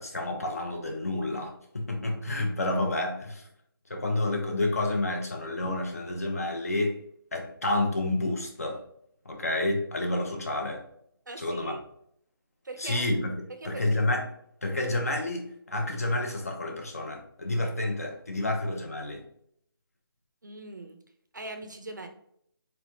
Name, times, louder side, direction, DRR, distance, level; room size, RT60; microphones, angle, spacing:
voice 1, 0.0-3.4 3.9-7.0 7.3-8.9 9.2-10.8 11.4-11.8 12.8-14.3 14.6-19.2, left 2 dB, 40° left, 3 dB, 0.8 m, -29 dB
voice 2, 11.3-11.8 12.6-13.1 13.6-13.8 20.4-21.0 21.3-22.1, right 2 dB, 50° right, 7 dB, 0.5 m, -40 dB
4.5 x 3.3 x 2.6 m, 0.68 s
figure-of-eight pair, 180°, 13 cm